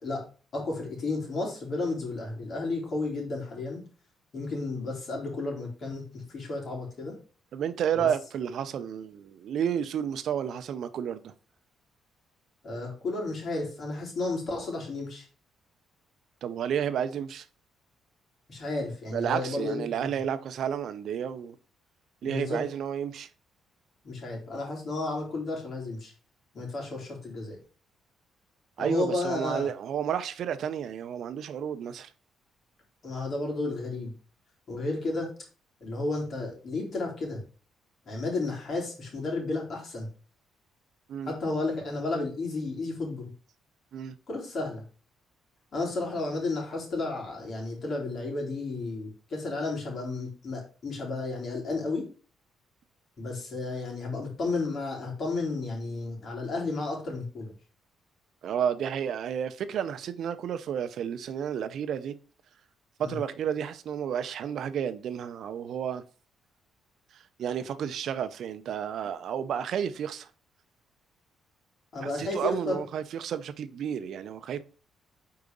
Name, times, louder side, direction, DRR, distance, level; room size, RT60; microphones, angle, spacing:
voice 1, 0.5-3.8 4.3-7.1 7.9-8.1 12.6-15.3 18.5-20.2 22.2-22.6 24.0-26.1 26.5-27.6 28.8-29.7 33.0-34.1 34.7-35.3 35.8-37.4 38.1-40.1 41.2-43.3 44.3-44.8 45.7-52.1 53.2-57.5 63.0-63.2 71.9-72.8, left 2 dB, 50° left, 3.7 m, -32 dB
voice 2, 7.5-11.3 16.4-17.4 19.1-21.6 22.2-23.3 28.8-32.1 41.1-41.3 43.9-44.1 58.4-62.1 63.0-66.0 67.4-70.3 72.0-74.6, right 8 dB, 70° right, 0.6 m, -31 dB
4.8 x 4.7 x 5.3 m
cardioid pair, 90°, 0 cm